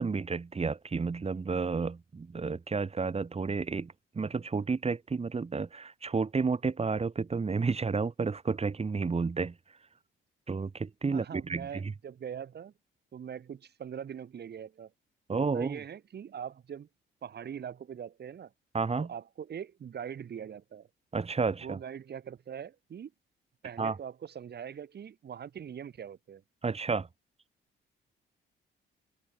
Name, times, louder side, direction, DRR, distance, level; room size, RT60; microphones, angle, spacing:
voice 1, 0.0-9.5 10.5-11.9 15.3-15.8 18.7-19.1 21.1-21.8 23.8-24.0 26.6-27.1, right 4 dB, 30° right, 5.6 m, -31 dB
voice 2, 11.1-12.7 13.1-14.9 15.3-16.9 17.2-18.5 19.0-20.9 21.5-23.1 23.6-26.4, right 8 dB, 55° right, 6.7 m, -42 dB
cardioid pair, 90°, 20 cm